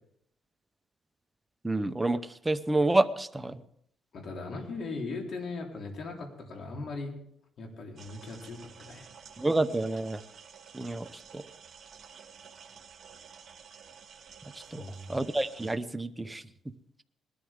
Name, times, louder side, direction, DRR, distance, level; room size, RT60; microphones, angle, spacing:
voice 1, 1.6-3.6 9.4-10.2 10.7-11.4 14.7-14.8 15.1-16.4, right 2 dB, 15° right, 10 dB, 0.9 m, -28 dB
voice 2, 4.1-7.1 7.6-9.1 14.7-15.1, left 3 dB, 60° left, 1 dB, 3.7 m, -39 dB
sound 1, 8.0-15.8, right 6 dB, 50° right, 2.2 m, -51 dB
20.0 x 13.0 x 3.7 m, 0.70 s
cardioid pair, 90°, 0 cm